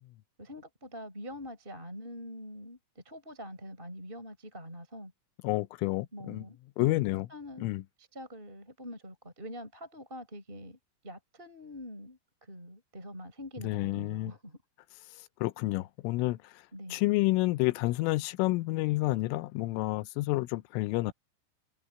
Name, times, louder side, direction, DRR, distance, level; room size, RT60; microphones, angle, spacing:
voice 1, 0.4-5.1 6.1-7.6 8.0-10.8 11.0-14.6 16.7-17.0, equal, 10° right, 5.5 m, -45 dB
voice 2, 5.4-6.4 6.8-7.3 7.6-7.8 13.6-14.3 15.4-16.6 16.9-21.1, left 20 dB, 90° left, 3.3 m, -29 dB
omnidirectional pair, 5.7 m